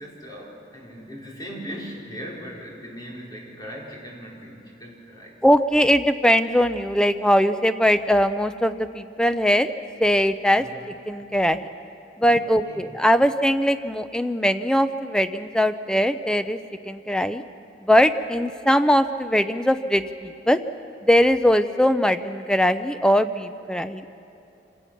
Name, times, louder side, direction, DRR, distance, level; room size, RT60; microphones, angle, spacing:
voice 1, 0.0-5.4 10.6-11.0 12.4-13.0, equal, 25° left, -3 dB, 4.1 m, -39 dB
voice 2, 5.4-9.7 10.0-10.6 11.1-11.7 12.2-16.6 16.9-17.4 17.8-20.6 21.0-24.1, equal, 5° left, 11 dB, 0.4 m, -20 dB
26.0 x 17.0 x 5.9 m, 2.8 s
head